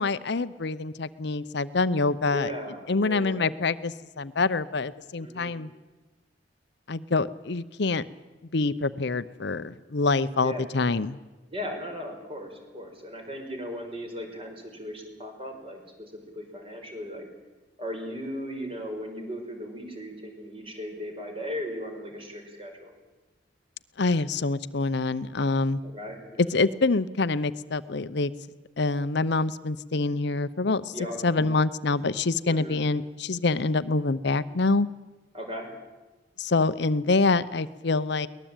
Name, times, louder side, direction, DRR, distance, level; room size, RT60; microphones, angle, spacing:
voice 1, 0.0-2.5 2.9-5.7 6.9-8.1 8.5-11.2 24.0-25.8 26.4-28.3 28.8-34.9 36.4-38.3, left 3 dB, 65° left, 14 dB, 0.8 m, -26 dB
voice 2, 2.3-3.5 5.2-5.5 10.4-10.6 11.5-17.3 17.8-22.9 25.8-26.5 30.9-31.2 32.5-32.8 35.3-35.7, equal, 30° right, 3 dB, 5.6 m, -37 dB
23.0 x 19.5 x 9.0 m, 1.2 s
head